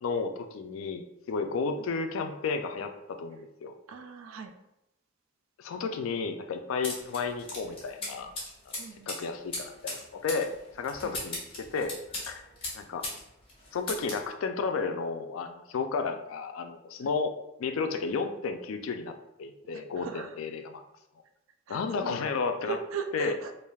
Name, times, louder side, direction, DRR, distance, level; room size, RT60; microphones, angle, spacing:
voice 1, 0.0-3.8 5.6-8.3 8.7-11.9 12.3-12.4 12.7-13.0 13.7-17.3 17.6-20.8 21.7-22.8 23.1-23.3, left 4 dB, 85° left, 7 dB, 0.3 m, -32 dB
voice 2, 3.9-4.5 8.8-9.1 11.0-11.2 17.0-17.1 19.7-20.4 21.7-22.2 22.6-23.5, right 6 dB, 85° right, 6 dB, 0.4 m, -38 dB
sound 1, 6.8-13.2 13.5-14.3, left 2 dB, 25° left, 1.0 m, -38 dB
3.2 x 2.5 x 2.3 m, 0.86 s
head